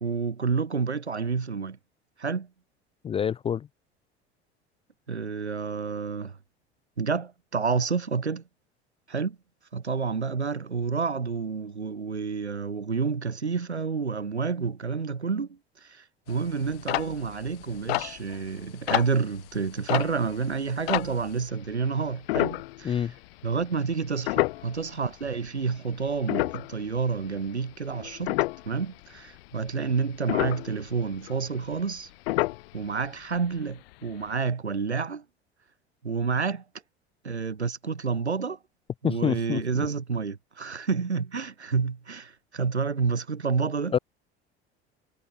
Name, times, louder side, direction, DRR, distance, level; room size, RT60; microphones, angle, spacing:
voice 1, 0.0-1.8 2.2-2.5 5.1-6.3 7.0-8.4 9.1-9.4 9.7-23.1 23.4-28.4 28.6-32.1 32.7-35.2 36.0-36.6 37.2-38.6 39.0-44.0, right 5 dB, 85° right, 1.4 m, -29 dB
voice 2, 3.0-3.7 22.8-23.1 39.0-39.6 43.9-44.0, left 8 dB, 20° left, 0.3 m, -26 dB
sound 1, 16.3-21.5 22.3-23.2 23.6-23.7 24.2-25.5 25.9-28.8 29.2-29.7 30.0-32.0 32.3-33.1 33.4-33.5 33.7-33.9 34.3-34.4, left 20 dB, 65° left, 2.7 m, -30 dB
figure-of-eight pair, 65°, 32 cm